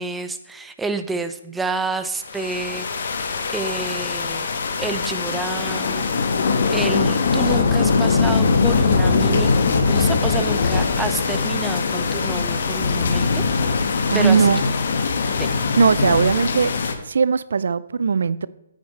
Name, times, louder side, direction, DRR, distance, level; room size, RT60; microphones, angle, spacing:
voice 1, 0.0-4.5 4.8-6.1 6.7-9.5 9.9-13.4 14.1-14.5 15.4-15.5, right 3 dB, 5° right, 9 dB, 0.6 m, -29 dB
sound 1, 2.2-16.9, left 4 dB, 60° left, 1.3 m, -21 dB
voice 2, 14.1-14.6 15.8-16.7 17.1-18.5, right 5 dB, 70° right, 17 dB, 0.4 m, -18 dB
9.5 x 9.3 x 3.2 m, 0.93 s
figure-of-eight pair, 140°, 0 cm